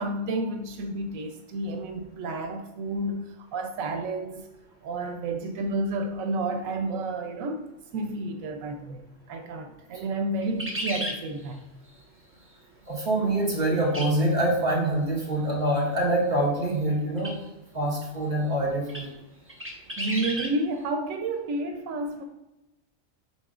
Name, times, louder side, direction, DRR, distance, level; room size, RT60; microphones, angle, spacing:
voice 1, 0.0-4.4 4.8-11.7 20.0-22.2, right 2 dB, 90° right, 1.0 m, -31 dB
sound 1, 10.4-11.2 13.9-14.1 14.4-14.5 17.2-17.4 18.0-18.1 18.9-19.1 19.5-20.5, equal, 10° right, 1.0 m, -32 dB
voice 2, 12.9-17.3 17.7-19.1, right 1 dB, 35° right, 2.6 m, -25 dB
8.4 x 5.4 x 2.4 m
omnidirectional pair, 1.3 m